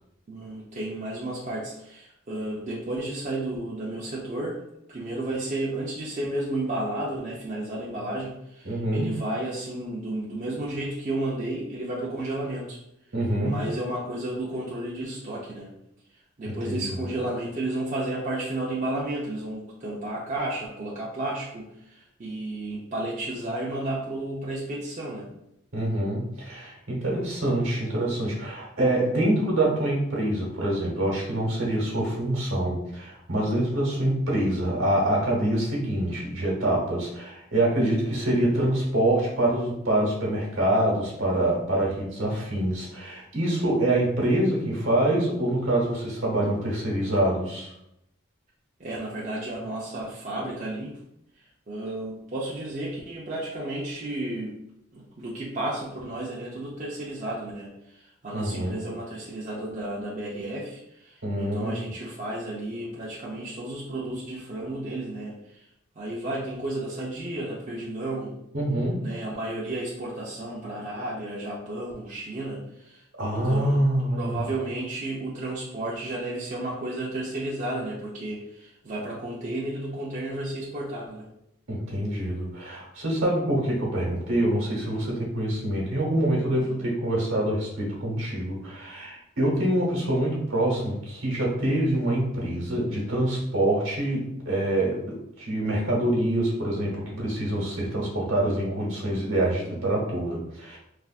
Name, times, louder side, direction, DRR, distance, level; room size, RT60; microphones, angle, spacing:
voice 1, 0.3-4.6 4.9-12.8 13.4-15.7 16.4-25.3 48.8-51.0 51.4-54.5 54.9-65.7 66.0-68.3 69.0-73.8 74.1-81.3 86.5-86.8 97.1-97.4, right 1 dB, 35° right, -5 dB, 0.4 m, -32 dB
voice 2, 8.6-9.1 13.1-13.6 16.4-16.9 25.7-47.7 58.3-58.8 61.2-61.8 68.5-69.0 73.2-74.4 81.7-100.8, right 1 dB, 75° right, -3 dB, 1.1 m, -25 dB
3.3 x 2.5 x 2.4 m, 0.80 s
head